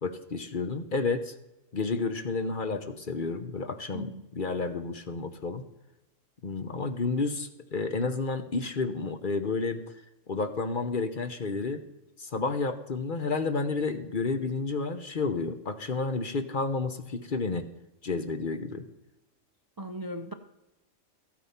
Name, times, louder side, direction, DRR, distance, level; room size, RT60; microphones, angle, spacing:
voice 1, 0.0-1.3 1.7-5.6 6.4-9.8 10.3-11.8 12.2-17.6 18.0-18.9, left 4 dB, 45° left, 8 dB, 1.0 m, -31 dB
voice 2, 19.8-20.3, right 1 dB, 30° right, 8 dB, 0.4 m, -37 dB
14.0 x 8.9 x 5.8 m, 0.92 s
omnidirectional pair, 1.3 m